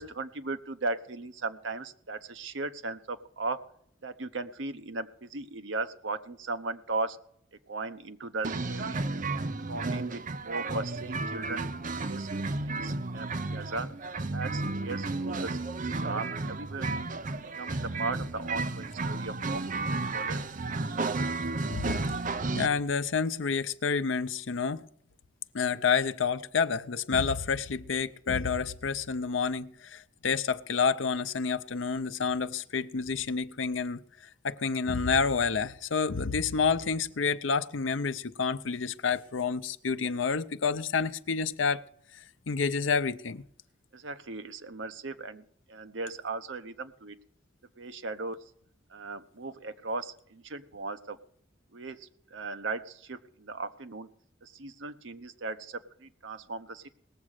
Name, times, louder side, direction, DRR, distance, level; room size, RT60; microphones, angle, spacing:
voice 1, 0.0-3.6 4.0-7.2 7.7-9.0 9.7-11.7 12.0-12.3 12.6-13.9 14.3-16.9 17.6-21.2 43.9-45.4 45.7-47.2 47.8-48.4 48.9-51.2 51.7-54.1 54.4-57.0, right 3 dB, 75° right, 0.9 m, -37 dB
sound 1, 8.4-22.7, right 3 dB, 45° right, 0.7 m, -33 dB
voice 2, 21.7-22.0 22.6-24.8 25.5-34.0 34.4-41.8 42.5-43.4, left 5 dB, 85° left, 0.7 m, -29 dB
19.0 x 7.4 x 6.5 m
head